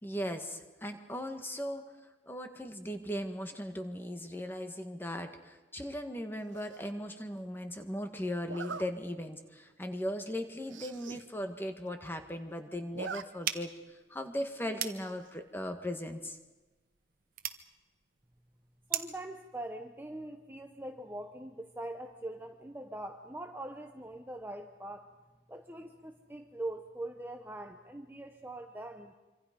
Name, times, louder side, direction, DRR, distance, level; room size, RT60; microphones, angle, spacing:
voice 1, 0.0-1.8 2.3-16.4, equal, 10° left, 6 dB, 1.7 m, -38 dB
Zipper (clothing), 6.5-6.9 8.4-8.8 9.4-9.6 9.9-10.0 10.2-10.3 10.6-11.2 11.6-11.7 11.9-12.4 12.7-13.2 13.6-13.7 15.0-15.4, right 5 dB, 85° right, 0.9 m, -43 dB
sound 1, 13.4-19.3, right 10 dB, 45° right, 1.2 m, -41 dB
voice 2, 18.9-25.1 25.5-29.1, right 1 dB, 10° right, 5 dB, 1.0 m, -42 dB
26.0 x 26.0 x 5.3 m, 1.2 s
head